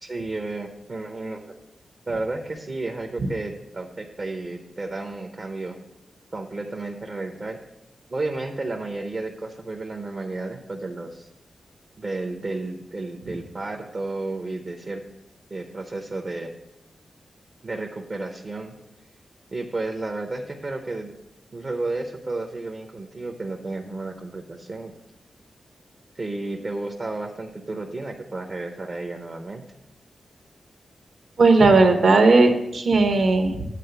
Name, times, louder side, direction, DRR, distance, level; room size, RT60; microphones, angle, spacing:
voice 1, 0.0-1.4 2.1-5.8 6.3-7.6 8.1-11.3 12.0-15.0 15.5-16.5 17.6-18.7 19.5-21.1 21.5-24.9 26.2-29.6, right 2 dB, 35° right, 3 dB, 0.6 m, -32 dB
voice 2, 31.4-33.6, right 3 dB, 65° right, 5 dB, 1.1 m, -16 dB
8.3 x 4.0 x 6.8 m, 0.88 s
wide cardioid pair, 135°, 0 cm